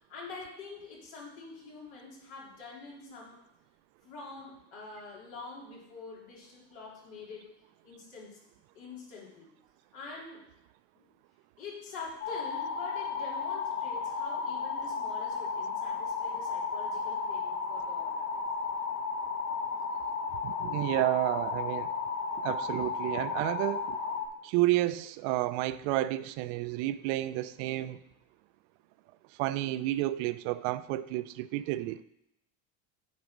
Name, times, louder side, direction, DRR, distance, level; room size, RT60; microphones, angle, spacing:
voice 1, 0.1-3.4 4.0-7.5 7.8-8.4 8.7-9.5 9.9-10.4 11.0-11.1 11.6-18.2, left 4 dB, 75° left, 3.4 m, -46 dB
sound 1, 12.2-24.3, left 5 dB, 50° left, 1.3 m, -34 dB
voice 2, 20.4-21.9 22.4-24.0 24.4-28.0 29.4-32.0, right 16 dB, 65° right, 0.5 m, -30 dB
9.4 x 4.0 x 5.1 m
supercardioid pair, 130°, 40 cm